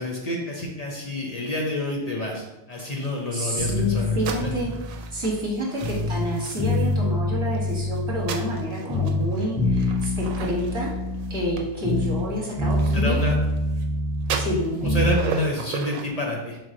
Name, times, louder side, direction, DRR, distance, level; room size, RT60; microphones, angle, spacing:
voice 1, 0.0-4.6 12.9-13.3 14.8-16.6, left 1 dB, 40° left, -1 dB, 0.6 m, -28 dB
sound 1, 2.7-7.1 7.5-13.9 14.2-16.1, right 6 dB, 85° right, 1.0 m, -37 dB
voice 2, 3.3-4.7 5.1-10.9 11.3-13.2 14.4-14.9, equal, 25° right, -5 dB, 1.3 m, -28 dB
sound 2, 3.6-6.2 6.6-8.6 8.9-12.3 12.6-15.2, left 1 dB, 10° left, 0.8 m, -25 dB
4.5 x 3.1 x 3.8 m, 0.99 s
omnidirectional pair, 1.4 m